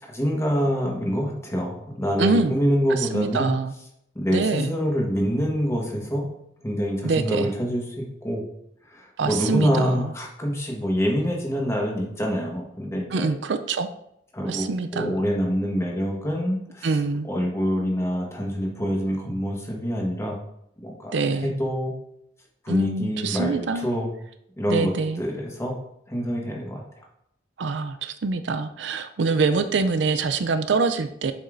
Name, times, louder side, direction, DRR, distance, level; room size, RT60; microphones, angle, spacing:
voice 1, 0.1-3.5 4.1-6.3 6.6-8.4 8.9-13.3 14.3-16.9 17.3-20.4 20.8-21.9 22.6-24.1 24.6-24.9 25.2-25.8 26.1-26.8, equal, 15° left, -1 dB, 1.3 m, -26 dB
voice 2, 2.2-2.6 2.9-3.7 4.3-4.7 7.0-7.5 9.2-10.1 13.1-13.9 14.5-15.2 16.8-17.3 21.1-21.5 22.7-23.9 24.7-25.2 27.6-31.3, right 4 dB, 70° right, 10 dB, 0.5 m, -25 dB
7.2 x 5.4 x 2.6 m, 0.75 s
head